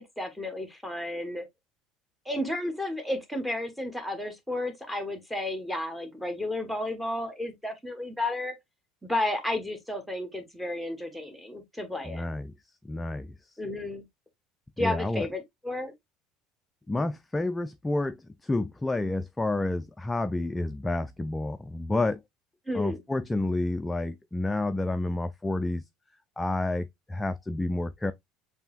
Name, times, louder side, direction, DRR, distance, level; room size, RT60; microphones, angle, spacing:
voice 1, 0.0-1.5 2.2-8.5 9.0-12.3 13.6-14.0 14.8-15.9 22.7-23.0, left 1 dB, ahead, 1.3 m, -32 dB
voice 2, 12.0-12.5 12.8-13.3 14.8-15.3 16.9-22.2 22.7-25.8 26.4-28.1, left 2 dB, 15° left, 0.4 m, -29 dB
6.7 x 2.8 x 2.4 m
figure-of-eight pair, 65°, 0 cm